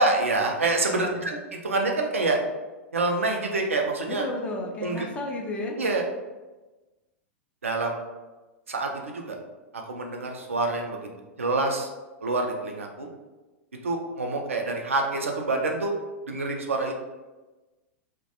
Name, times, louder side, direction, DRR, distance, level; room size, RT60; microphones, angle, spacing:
voice 1, 0.0-1.4 1.6-2.4 2.9-4.2 4.8-5.1 5.8-6.0 7.6-8.0 8.7-9.4 9.7-11.1 11.4-11.9 12.2-13.1 13.8-15.9 16.3-17.0, right 2 dB, 75° right, 2 dB, 0.4 m, -26 dB
voice 2, 0.9-1.3 4.1-5.8, left 2 dB, 20° left, 0 dB, 0.4 m, -33 dB
2.2 x 2.1 x 2.7 m, 1.2 s
figure-of-eight pair, 95°, 7 cm